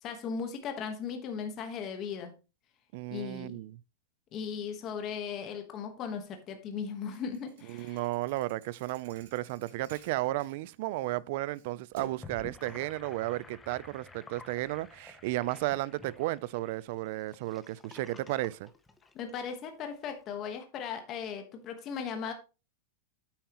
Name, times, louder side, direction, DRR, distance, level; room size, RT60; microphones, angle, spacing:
voice 1, 0.0-2.3 3.1-3.6 4.3-8.1 19.1-22.3, left 6 dB, 25° left, 1.2 m, -37 dB
voice 2, 2.9-3.8 7.7-18.7, right 17 dB, 40° right, 0.4 m, -34 dB
Thump thud, 7.1-11.2 11.5-12.4, right 6 dB, 60° right, 2.7 m, -52 dB
Gurgling / Sink (filling or washing), 12.1-19.5, left 3 dB, 5° left, 0.7 m, -52 dB
9.2 x 8.7 x 2.9 m
supercardioid pair, 175°, 0 cm